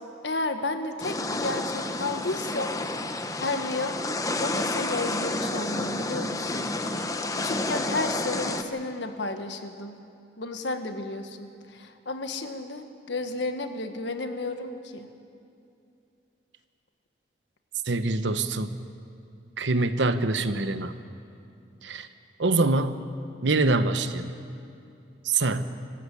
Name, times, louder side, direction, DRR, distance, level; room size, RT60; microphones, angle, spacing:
voice 1, 0.0-2.7 3.4-4.0 4.4-6.7 7.3-10.0 10.4-15.1, left 2 dB, 75° left, 7 dB, 1.5 m, -32 dB
sound 1, 1.0-8.6, left 2 dB, 20° left, 0.9 m, -30 dB
voice 2, 17.8-18.8 19.6-20.9 21.8-22.1 22.4-23.1 23.4-24.2 25.2-25.7, right 3 dB, 80° right, 10 dB, 1.0 m, -25 dB
26.0 x 13.5 x 8.4 m, 2.6 s
head